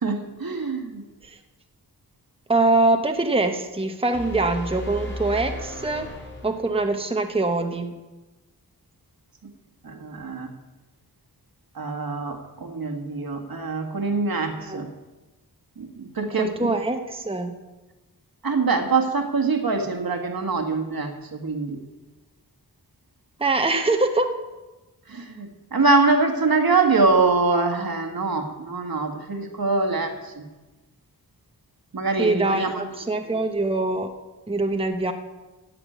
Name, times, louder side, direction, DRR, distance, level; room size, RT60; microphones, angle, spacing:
voice 1, 0.0-1.1 9.4-9.5 9.8-10.5 11.7-14.9 15.8-16.8 18.4-21.8 25.1-30.5 31.9-32.9 33.3-33.4, right 3 dB, 65° right, 4 dB, 1.8 m, -24 dB
voice 2, 2.5-6.1 6.4-7.9 14.7-14.8 16.4-17.5 23.4-24.4 32.2-34.1 34.5-35.1, right 2 dB, 15° right, 5 dB, 1.0 m, -23 dB
sound 1, 4.1-7.0, left 1 dB, 30° left, 3.2 m, -35 dB
15.5 x 5.9 x 9.2 m, 1.1 s
wide cardioid pair, 80°, 39 cm